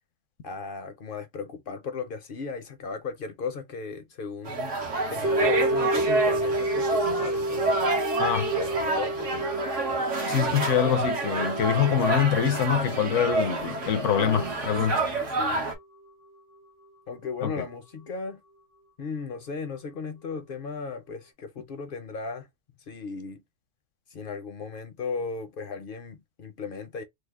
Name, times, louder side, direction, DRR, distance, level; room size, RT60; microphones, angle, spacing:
voice 1, 0.4-4.8 5.1-7.8 8.6-9.3 14.9-15.6 17.1-18.4 19.0-22.5 22.9-23.4 24.1-27.0, left 5 dB, 55° left, 0.6 m, -36 dB
sound 1, 4.4-15.8, right 3 dB, 70° right, 1.3 m, -28 dB
sound 2, 5.2-15.5 15.8-15.9, right 1 dB, 50° right, 1.0 m, -31 dB
voice 2, 8.2-8.5 10.3-15.0 17.4-17.5, left 8 dB, 75° left, 1.0 m, -25 dB
3.4 x 2.0 x 3.4 m
omnidirectional pair, 1.3 m